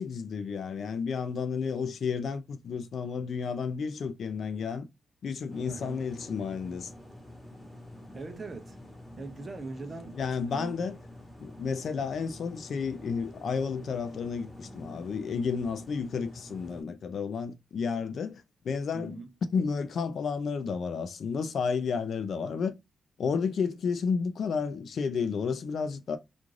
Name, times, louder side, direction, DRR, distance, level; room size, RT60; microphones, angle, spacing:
voice 1, 0.0-4.9 5.2-6.9 10.2-11.0 11.4-19.2 19.5-22.7 23.2-26.2, left 5 dB, 60° left, 0.4 m, -31 dB
sound 1, 5.5-16.8, left 1 dB, 10° left, 1.2 m, -48 dB
voice 2, 5.7-6.1 8.1-8.8 9.2-10.2 10.5-10.8 18.9-19.3, right 3 dB, 30° right, 0.5 m, -41 dB
2.5 x 2.4 x 3.1 m
wide cardioid pair, 145°, 0 cm